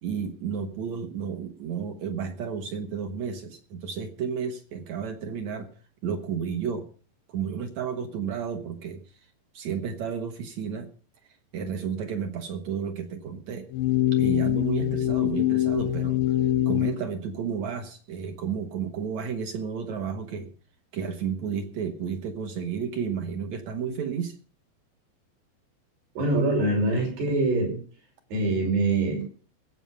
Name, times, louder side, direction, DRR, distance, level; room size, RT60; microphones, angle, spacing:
voice 1, 0.0-5.7 6.0-6.9 7.3-9.0 9.5-10.9 11.5-13.7 14.1-16.2 16.7-20.5 20.9-24.3, right 7 dB, 60° right, 6 dB, 1.9 m, -32 dB
sound 1, 13.7-17.0, left 12 dB, 85° left, 3.0 m, -24 dB
voice 2, 26.2-27.8 28.3-29.2, right 2 dB, 75° right, 0 dB, 7.5 m, -24 dB
19.0 x 8.1 x 5.6 m, 0.41 s
omnidirectional pair, 4.7 m